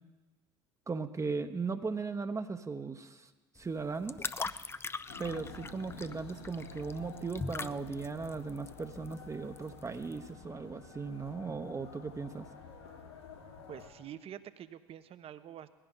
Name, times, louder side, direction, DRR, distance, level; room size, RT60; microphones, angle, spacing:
voice 1, 0.9-3.3 3.6-4.2 5.2-12.5, right 4 dB, 20° right, 8 dB, 1.0 m, -37 dB
sound 1, 3.6-10.3, left 4 dB, 20° left, 0.6 m, -42 dB
sound 2, 5.1-13.9, left 5 dB, 80° left, 3.7 m, -50 dB
voice 2, 13.7-15.7, right 10 dB, 45° right, 13 dB, 1.0 m, -47 dB
19.5 x 16.0 x 4.0 m, 1.3 s
hypercardioid pair, 65°, 14 cm